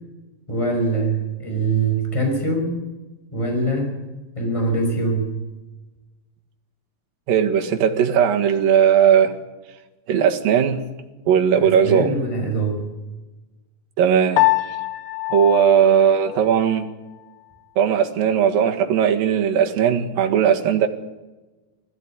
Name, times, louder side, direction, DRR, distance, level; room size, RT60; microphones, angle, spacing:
voice 1, 0.5-2.7 3.3-3.9 4.3-5.3 11.8-12.8, right 2 dB, 10° left, 2 dB, 5.7 m, -23 dB
voice 2, 7.3-9.3 10.1-10.8 11.3-12.1 14.0-14.4 15.3-16.9 17.8-20.9, right 8 dB, 75° right, 3 dB, 3.5 m, -18 dB
Piano, 14.4-16.9, left 17 dB, 55° left, 1.6 m, -24 dB
20.5 x 15.0 x 9.9 m, 1.1 s
omnidirectional pair, 4.1 m